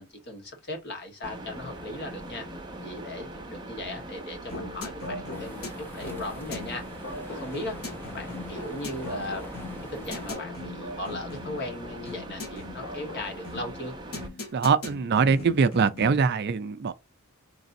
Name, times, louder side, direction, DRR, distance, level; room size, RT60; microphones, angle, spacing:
voice 1, 0.0-2.5 2.8-6.8 7.3-7.8 8.1-9.4 9.9-13.9, left 1 dB, 50° left, 1.4 m, -37 dB
sound 1, 1.2-14.3, right 1 dB, 20° right, 0.8 m, -41 dB
sound 2, 4.5-16.3, left 2 dB, 75° left, 1.2 m, -40 dB
sound 3, 5.3-10.3, equal, 10° left, 0.6 m, -45 dB
voice 2, 14.5-16.9, right 5 dB, 50° right, 0.4 m, -23 dB
4.0 x 3.3 x 2.6 m
head